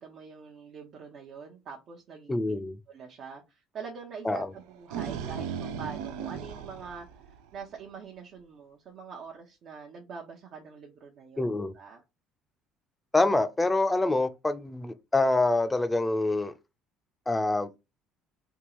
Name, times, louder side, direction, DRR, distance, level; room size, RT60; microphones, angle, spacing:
voice 1, 0.0-2.6 2.9-7.1 7.5-11.5 11.7-12.0, right 5 dB, 60° right, 0.8 m, -44 dB
voice 2, 2.3-2.8 4.2-4.5 11.4-11.7 13.1-16.5 17.3-17.7, left 2 dB, 15° left, 0.6 m, -26 dB
sound 1, 4.6-7.8, right 7 dB, 75° right, 0.4 m, -37 dB
3.6 x 2.3 x 2.9 m
hypercardioid pair, 60°, 0 cm